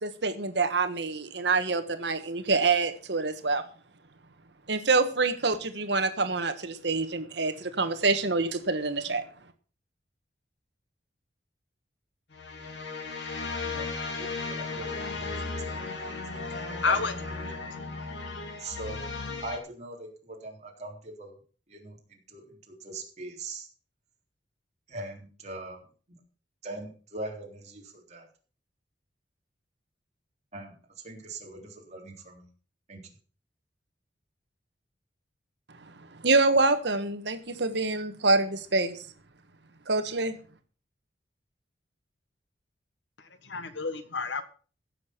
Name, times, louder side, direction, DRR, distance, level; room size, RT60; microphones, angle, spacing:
voice 1, 0.0-3.6 4.7-9.2 36.2-39.0 39.9-40.4, right 3 dB, 70° right, 9 dB, 1.4 m, -26 dB
sound 1, 12.3-19.6, left 3 dB, 70° left, 2.7 m, -35 dB
voice 2, 13.6-15.2 15.7-15.8 16.3-17.0 17.5-17.6 18.6-19.0 19.4-21.3 21.7-23.7 24.9-25.8 26.6-28.3 30.5-30.7 31.0-32.4 32.9-33.0, right 2 dB, 40° right, 0 dB, 3.6 m, -41 dB
voice 3, 14.6-15.1 16.8-17.1 43.4-44.4, left 4 dB, 85° left, 11 dB, 1.5 m, -30 dB
16.0 x 6.9 x 5.9 m, 0.40 s
head